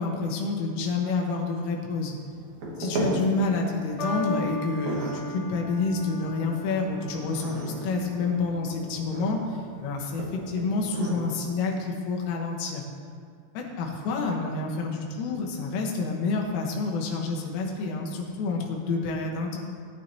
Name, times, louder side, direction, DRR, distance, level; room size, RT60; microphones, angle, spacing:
voice 1, 0.0-2.2 2.8-9.4 9.8-12.8 13.6-19.6, left 3 dB, 85° left, -1 dB, 3.8 m, -28 dB
sound 1, 2.2-11.2, right 2 dB, 80° right, 1.6 m, -36 dB
sound 2, 4.0-10.5 11.4-11.8, left 1 dB, 65° left, 3.5 m, -37 dB
18.5 x 9.5 x 2.9 m, 2.1 s
omnidirectional pair, 5.8 m